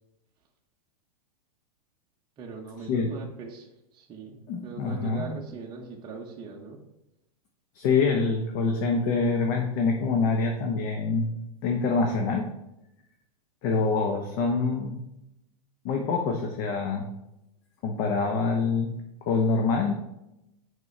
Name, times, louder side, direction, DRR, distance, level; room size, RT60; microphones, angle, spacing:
voice 1, 2.4-6.8, right 4 dB, 25° right, -1 dB, 0.8 m, -41 dB
voice 2, 4.5-5.3 7.7-11.3 11.6-12.5 13.6-15.0 15.8-17.1 17.8-18.9 19.3-19.9, left 4 dB, 45° left, 3 dB, 0.8 m, -25 dB
6.0 x 5.3 x 3.2 m, 0.88 s
hypercardioid pair, 130°, 19 cm